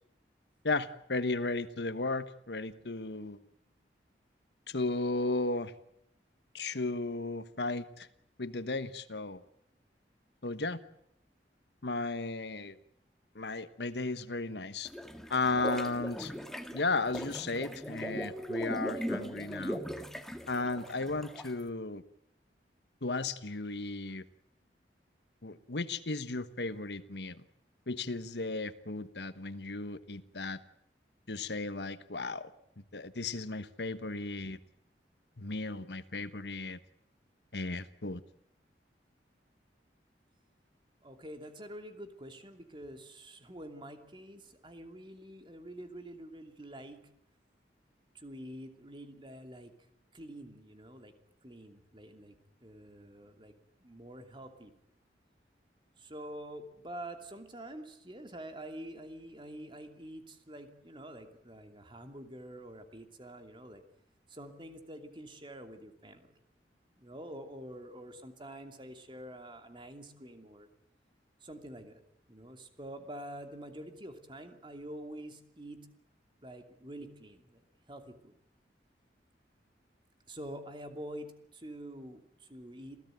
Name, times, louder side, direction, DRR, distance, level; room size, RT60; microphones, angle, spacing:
voice 1, 0.6-3.4 4.7-5.7 6.5-8.1 8.4-9.4 10.4-10.8 11.8-12.8 13.3-14.9 15.3-16.3 16.7-19.8 20.5-22.0 23.0-24.2 25.4-27.4 27.9-30.6 31.3-32.5 32.9-34.6 35.4-36.8 37.5-38.2, left 3 dB, 75° left, 13 dB, 1.3 m, -35 dB
sound 1, 14.9-21.6, equal, ahead, 1.8 m, -39 dB
voice 2, 41.0-47.0 48.1-49.7 50.1-51.1 51.4-53.5 53.8-54.7 56.0-63.8 64.3-66.3 67.0-70.7 71.4-72.0 72.3-75.9 76.4-77.6 77.9-78.3 80.3-83.0, right 1 dB, 30° right, 6 dB, 2.7 m, -47 dB
28.0 x 16.0 x 9.2 m, 0.75 s
head